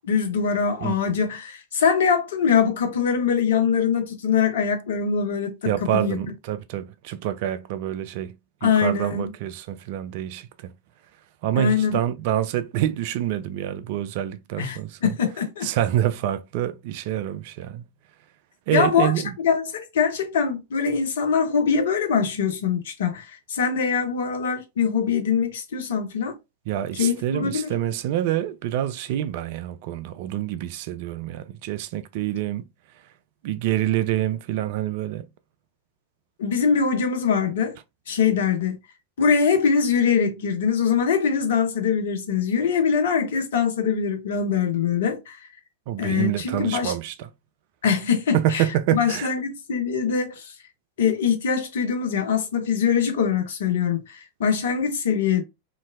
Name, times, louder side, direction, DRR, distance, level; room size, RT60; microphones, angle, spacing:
voice 1, 0.0-6.2 8.6-9.3 11.6-12.0 14.6-15.6 18.7-19.1 19.4-26.3 26.9-27.7 36.4-37.8 38.1-38.8 39.2-45.4 46.0-46.9 47.8-48.6 48.9-50.5 51.0-55.4, left 6 dB, 60° left, 0.7 m, -23 dB
voice 2, 5.6-8.4 8.6-10.7 11.4-15.1 15.6-17.8 18.7-19.4 26.7-32.7 33.4-35.3 45.9-47.3 48.3-49.4, right 12 dB, 50° right, 0.3 m, -26 dB
2.9 x 2.6 x 2.4 m
figure-of-eight pair, 90°, 0 cm